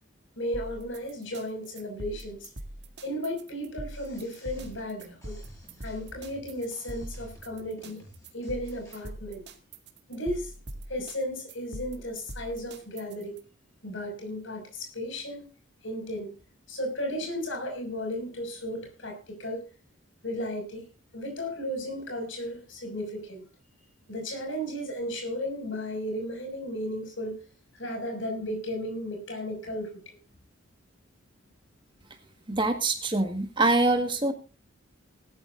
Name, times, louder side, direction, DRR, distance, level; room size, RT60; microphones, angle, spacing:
voice 1, 0.4-2.5 3.0-5.4 5.8-8.0 8.3-9.5 10.1-10.5 10.9-13.4 13.8-15.4 15.8-16.3 16.7-19.7 20.2-20.8 21.1-23.4 24.1-27.4 27.7-30.2, equal, 70° left, 3 dB, 6.0 m, -34 dB
sound 1, 0.5-13.4, right 1 dB, 55° right, 2.0 m, -42 dB
sound 2, 3.9-9.0, equal, 15° left, 7.6 m, -53 dB
voice 2, 32.5-34.3, right 2 dB, 25° right, 6 dB, 1.7 m, -24 dB
19.5 x 13.0 x 2.6 m, 0.31 s
head